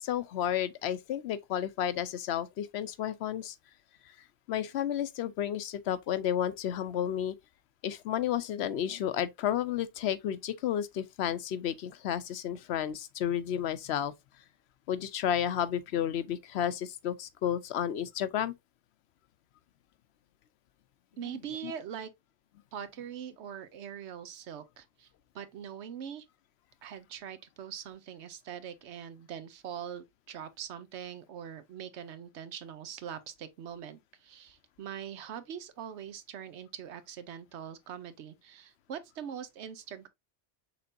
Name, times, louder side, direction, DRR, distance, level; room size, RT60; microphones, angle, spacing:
voice 1, 0.0-3.6 4.5-7.3 7.8-14.1 14.9-18.5 21.6-21.7, left 10 dB, 75° left, 0.8 m, -32 dB
voice 2, 21.2-22.1 22.7-25.1 25.3-26.3 26.8-40.1, right 8 dB, 85° right, 1.0 m, -42 dB
5.8 x 3.4 x 2.6 m
omnidirectional pair, 1.1 m